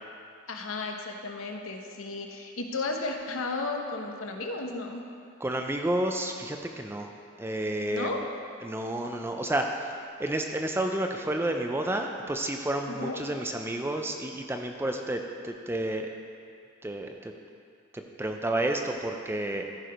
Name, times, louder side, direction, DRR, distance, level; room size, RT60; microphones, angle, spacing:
voice 1, 0.5-5.0 7.9-8.2 12.9-13.3, left 3 dB, 75° left, 3 dB, 1.0 m, -34 dB
voice 2, 5.4-7.1 7.4-8.1 8.6-16.1 16.8-17.3 17.9-19.7, right 1 dB, 10° right, 4 dB, 0.4 m, -30 dB
14.0 x 4.8 x 5.1 m, 2.3 s
head